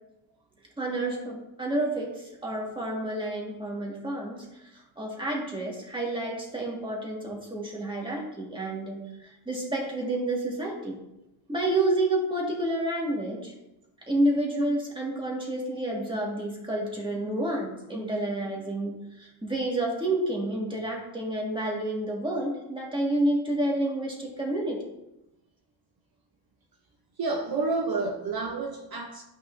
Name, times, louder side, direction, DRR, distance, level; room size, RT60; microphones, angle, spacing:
voice 1, 0.8-4.5 4.7-11.0 11.5-13.5 14.1-18.9 19.2-24.8, right 1 dB, 10° right, 1.8 m, -29 dB
voice 2, 27.2-29.2, right 3 dB, 50° right, 0.8 m, -29 dB
11.5 x 5.4 x 2.7 m
wide cardioid pair, 140°, 45 cm